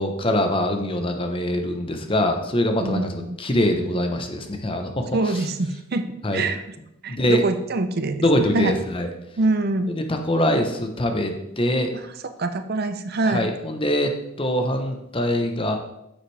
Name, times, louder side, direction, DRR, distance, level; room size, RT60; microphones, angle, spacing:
voice 1, 0.0-4.9 6.2-6.4 7.1-7.4 8.2-9.1 9.9-11.9 13.3-14.1 14.4-15.8, left 1 dB, 25° left, 5 dB, 1.0 m, -23 dB
voice 2, 2.8-3.4 5.1-6.1 6.3-6.6 7.0-8.8 9.4-9.9 11.9-13.5, right 2 dB, 50° right, 10 dB, 0.6 m, -25 dB
9.8 x 7.4 x 3.4 m, 0.84 s
head